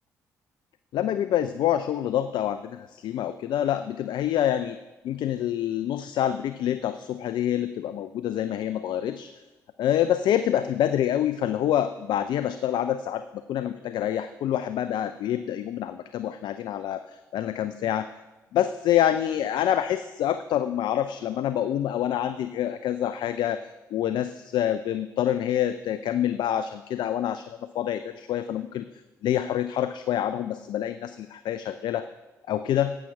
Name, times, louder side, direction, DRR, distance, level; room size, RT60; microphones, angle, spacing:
voice 1, 0.9-4.8 5.0-9.3 9.8-13.2 13.5-18.1 18.5-23.6 23.9-28.9 29.2-32.1 32.5-32.9, left 11 dB, 65° left, 11 dB, 0.4 m, -26 dB
11.0 x 7.5 x 5.8 m, 1.1 s
hypercardioid pair, 50°, 8 cm